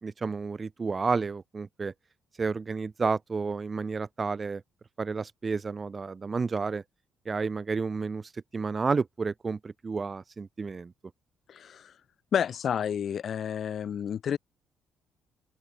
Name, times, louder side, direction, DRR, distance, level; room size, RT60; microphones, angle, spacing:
voice 1, 0.0-1.9 2.4-4.6 5.0-6.8 7.2-10.9, right 4 dB, 25° right, 1.3 m, -31 dB
voice 2, 11.5-11.9 12.3-14.4, left 8 dB, 45° left, 6.3 m, -30 dB
open air
cardioid pair, 150°, 0 cm